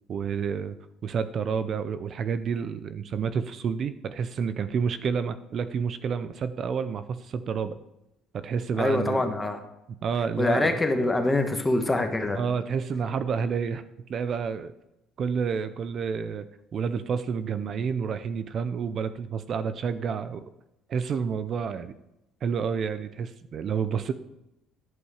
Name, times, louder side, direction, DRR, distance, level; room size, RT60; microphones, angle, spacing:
voice 1, 0.1-0.8 1.0-7.8 8.3-9.3 10.0-10.8 12.3-14.7 15.2-16.4 16.7-20.4 20.9-21.9 22.4-24.1, right 6 dB, 50° right, 12 dB, 0.5 m, -29 dB
voice 2, 8.8-9.6 10.4-12.4, left 2 dB, 15° left, 6 dB, 1.3 m, -24 dB
11.0 x 5.4 x 4.9 m, 0.89 s
cardioid pair, 95°, 0 cm